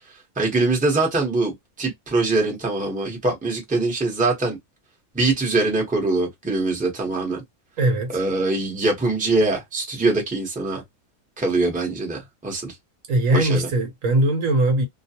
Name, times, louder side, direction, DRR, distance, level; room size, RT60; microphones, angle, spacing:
voice 1, 0.4-1.5 1.8-4.6 5.1-7.4 8.1-10.8 11.4-12.7 13.3-13.7, right 3 dB, 5° right, 0.7 m, -23 dB
voice 2, 7.8-8.2 13.1-14.9, right 1 dB, 65° right, 1.1 m, -20 dB
2.4 x 2.2 x 2.7 m
omnidirectional pair, 1.5 m